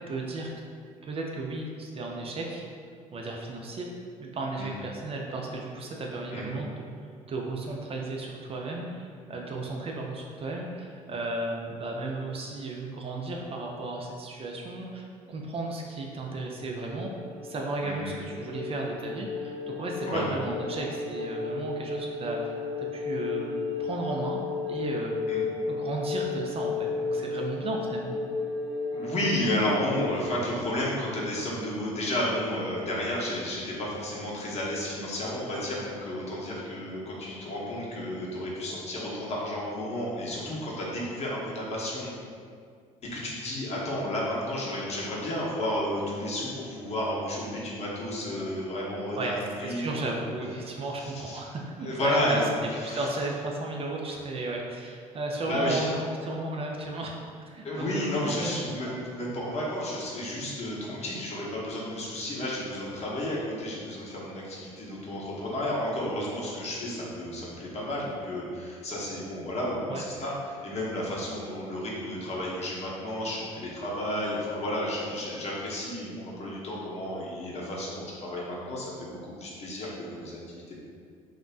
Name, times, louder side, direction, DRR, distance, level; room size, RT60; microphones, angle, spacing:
voice 1, 0.1-0.5 1.0-2.6 3.1-3.9 4.2-6.7 7.3-17.1 17.4-23.5 23.8-24.4 24.7-25.1 25.7-28.2 49.1-52.4 52.8-58.6 69.9-70.0, right 2 dB, 35° right, -1 dB, 0.4 m, -34 dB
sound 1, 16.0-30.2, left 4 dB, 75° right, 0.7 m, -34 dB
voice 2, 17.8-18.2 20.1-20.2 25.3-25.4 28.9-42.1 43.1-49.9 50.1-50.2 51.0-51.4 51.8-52.5 52.8-53.1 55.5-55.8 57.6-80.8, left 1 dB, 40° left, -5 dB, 0.7 m, -32 dB
2.5 x 2.1 x 2.3 m, 2.2 s
hypercardioid pair, 55°, 16 cm